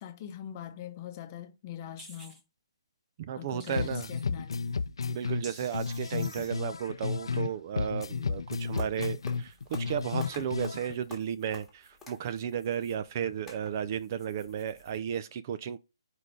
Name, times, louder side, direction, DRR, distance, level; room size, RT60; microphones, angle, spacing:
voice 1, 0.0-2.4 3.3-4.8, left 10 dB, 30° left, 0.8 m, -42 dB
sound 1, 2.0-2.4 3.6-4.2 5.4-6.6, right 2 dB, 15° right, 1.5 m, -50 dB
voice 2, 3.2-4.1 5.1-15.8, right 8 dB, 35° right, 0.4 m, -34 dB
sound 2, 3.8-7.5 7.8-11.0, left 5 dB, 75° left, 0.5 m, -33 dB
sound 3, 8.5-15.0, left 4 dB, 5° left, 1.7 m, -51 dB
4.8 x 4.1 x 5.2 m
hypercardioid pair, 155°, 3 cm